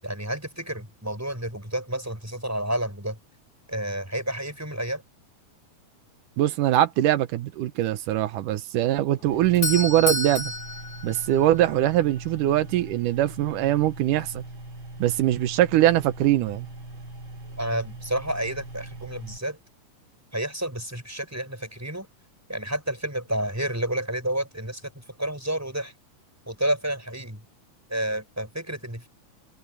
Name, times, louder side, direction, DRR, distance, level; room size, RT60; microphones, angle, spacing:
voice 1, 0.0-3.2 3.7-5.0 17.6-19.6 20.3-22.1 22.5-25.9 26.5-27.4 27.9-29.1, right 1 dB, 5° right, 6.2 m, -30 dB
voice 2, 6.4-10.5 11.0-14.4 15.0-16.7, right 13 dB, 85° right, 2.5 m, -22 dB
Doorbell, 9.2-12.0, left 2 dB, 35° left, 2.7 m, -31 dB
sound 1, 9.3-19.4, right 2 dB, 40° right, 4.2 m, -41 dB
omnidirectional pair, 3.7 m